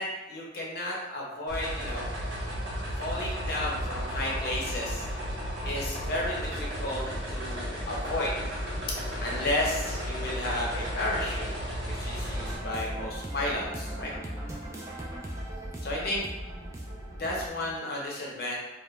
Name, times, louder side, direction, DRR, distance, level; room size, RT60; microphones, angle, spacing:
voice 1, 0.0-2.1 3.0-5.1 5.6-7.0 7.3-8.3 9.2-11.5 11.8-14.1 15.8-16.2 17.2-18.6, left 1 dB, 55° left, -3 dB, 0.6 m, -32 dB
sound 1, 1.5-12.6, equal, 75° right, 0.8 m, -34 dB
sound 2, 1.7-17.7, equal, 50° right, 0.7 m, -50 dB
sound 3, 12.3-17.5, right 1 dB, 15° right, 0.3 m, -38 dB
2.3 x 2.0 x 3.0 m, 1.1 s
head